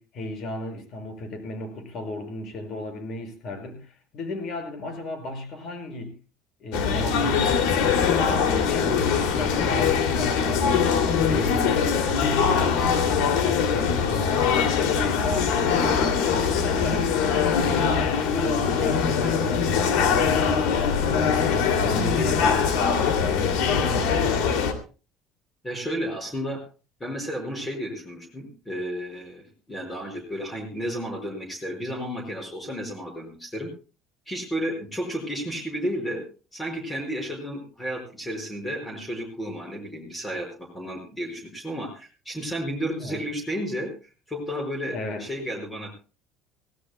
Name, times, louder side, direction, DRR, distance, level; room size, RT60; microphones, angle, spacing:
voice 1, 0.0-6.1 6.6-10.7 11.2-24.8 43.0-43.2 44.9-45.3, left 2 dB, 45° left, 5 dB, 6.1 m, -34 dB
sound 1, 6.7-24.7, left 6 dB, 80° left, 2.6 m, -22 dB
voice 2, 25.6-26.6 27.0-29.4 29.7-33.7 34.3-36.2 36.5-43.9 44.3-45.9, equal, 10° left, 2 dB, 5.2 m, -32 dB
24.0 x 17.5 x 2.2 m, 0.35 s
cardioid pair, 150°, 0 cm